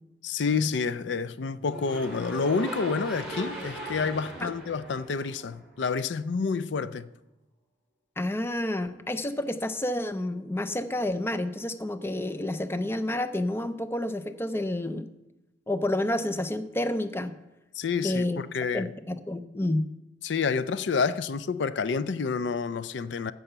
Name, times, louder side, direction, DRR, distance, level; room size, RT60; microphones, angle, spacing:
voice 1, 0.2-7.1 17.8-18.9 20.2-23.3, left 5 dB, 75° left, 0.4 m, -29 dB
sound 1, 1.7-5.9, right 2 dB, 5° right, 3.5 m, -38 dB
voice 2, 8.2-15.1 15.7-17.3 18.0-18.4 18.7-19.8, left 1 dB, 15° left, 0.5 m, -29 dB
14.5 x 5.6 x 6.8 m
head